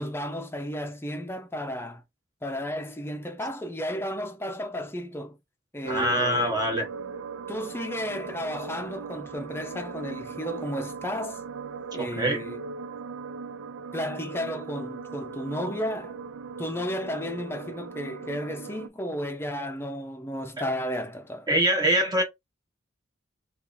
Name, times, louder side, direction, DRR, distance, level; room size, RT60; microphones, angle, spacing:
voice 1, 0.0-2.0 2.4-5.4 5.7-6.6 7.5-11.4 11.9-12.6 13.9-16.2 16.6-21.5, equal, 10° left, 0.5 m, -33 dB
sound 1, 5.8-18.9, right 5 dB, 80° right, 0.4 m, -39 dB
voice 2, 5.9-6.9 11.9-12.4 21.5-22.2, right 1 dB, 20° right, 1.0 m, -24 dB
2.7 x 2.5 x 3.8 m
head